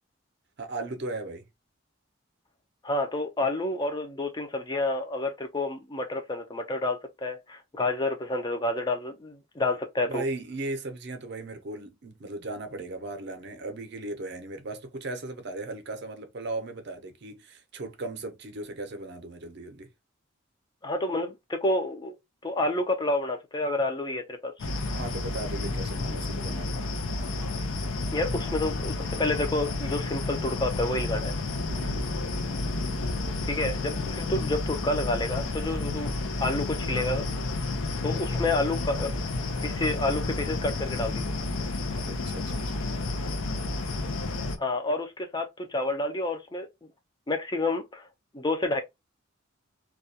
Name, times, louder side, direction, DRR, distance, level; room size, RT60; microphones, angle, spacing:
voice 1, 0.6-1.4 10.0-19.9 24.9-27.0 31.7-32.2 41.9-42.8, right 2 dB, 55° right, 0.6 m, -37 dB
voice 2, 2.8-10.2 20.8-22.2 22.4-24.5 28.1-31.3 33.4-36.1 36.4-37.2 38.0-39.1 39.6-41.3 44.6-46.7 47.3-48.1 48.3-48.8, left 2 dB, 20° left, 0.4 m, -29 dB
sound 1, 24.6-44.6, left 2 dB, 85° left, 0.5 m, -31 dB
2.3 x 2.2 x 2.6 m
head